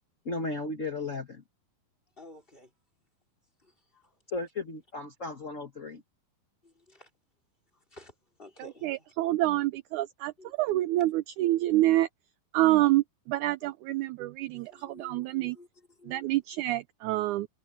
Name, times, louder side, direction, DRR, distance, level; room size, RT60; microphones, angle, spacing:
voice 1, 0.2-1.4 4.3-6.0, left 3 dB, 50° left, 0.8 m, -35 dB
voice 2, 2.2-2.7 3.6-4.0 6.6-7.1 7.9-8.1 8.4-8.5 10.4-10.5 14.5-16.2, left 2 dB, 15° left, 4.5 m, -52 dB
voice 3, 9.2-10.3 10.6-12.1 12.5-15.6 16.1-17.5, right 16 dB, 85° right, 1.7 m, -27 dB
omnidirectional pair, 4.1 m